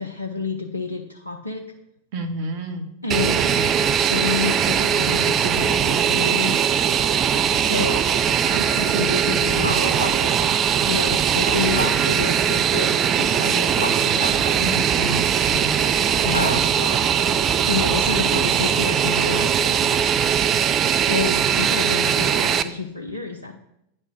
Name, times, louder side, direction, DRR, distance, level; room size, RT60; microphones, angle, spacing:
voice 1, 0.0-1.6 3.0-3.5 3.9-6.5 7.5-8.1 8.4-10.4 10.8-14.7 16.2-16.6 17.7-19.9 21.1-23.6, left 3 dB, 80° left, 2 dB, 0.6 m, -29 dB
voice 2, 2.1-2.9 3.5-3.7 14.6-15.9 16.5-16.9, right 1 dB, 50° right, 7 dB, 1.0 m, -31 dB
Fixed-wing aircraft airplane, 3.1-22.6, right 8 dB, 30° right, 0.4 m, -20 dB
sound 1, 9.6-10.4 11.1-11.2 11.5-12.4 13.2-15.1 15.7-17.1, equal, 90° right, 0.9 m, -31 dB
8.8 x 3.3 x 6.2 m, 0.81 s
figure-of-eight pair, 90°, 0 cm